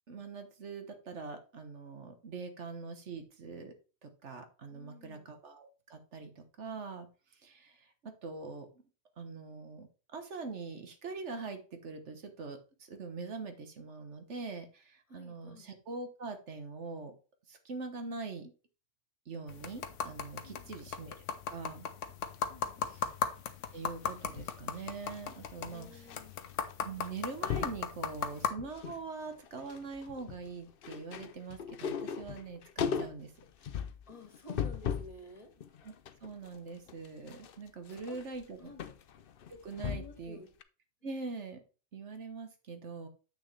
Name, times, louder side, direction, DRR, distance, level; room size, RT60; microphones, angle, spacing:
voice 1, 0.1-3.7 4.0-7.1 7.4-8.7 9.2-9.9 10.1-17.1 17.5-18.5 19.3-21.1 21.5-21.9 22.8-23.1 23.7-26.1 26.8-33.3 35.8-35.9 36.2-38.7 39.6-40.4 41.0-41.6 41.9-43.1, right 4 dB, 65° right, 7 dB, 1.5 m, -43 dB
voice 2, 4.7-5.4 15.1-15.8 20.4-20.9 22.5-23.1 25.6-26.4 34.1-35.5 38.1-38.2 38.6-39.0 39.8-40.5, left 2 dB, 30° left, 2 dB, 2.1 m, -52 dB
sound 1, 19.5-28.5, left 7 dB, 80° left, 1.1 m, -38 dB
sound 2, 24.0-26.2 26.5-26.7 27.0-27.8 28.4-29.0 29.3-35.2 35.6-40.3 40.6-40.7, left 7 dB, 55° left, 0.7 m, -39 dB
8.1 x 6.2 x 3.3 m, 0.34 s
omnidirectional pair, 1.3 m